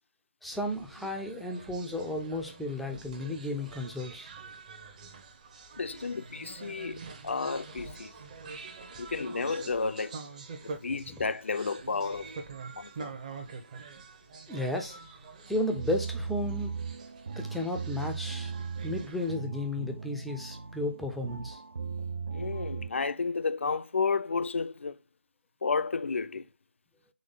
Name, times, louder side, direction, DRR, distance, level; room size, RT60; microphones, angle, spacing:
voice 1, 0.4-4.3 14.5-15.0 15.5-16.7 17.4-18.5 18.8-21.6, left 1 dB, ahead, 0.3 m, -33 dB
sound 1, 0.5-19.3, right 4 dB, 35° right, 0.7 m, -46 dB
voice 2, 5.8-8.1 9.0-10.2 10.6-12.3 12.8-13.2 22.3-25.0 25.6-26.5, left 4 dB, 75° left, 0.4 m, -32 dB
sound 2, 15.6-22.9, right 5 dB, 65° right, 0.4 m, -37 dB
3.9 x 3.1 x 3.5 m
figure-of-eight pair, 155°, 7 cm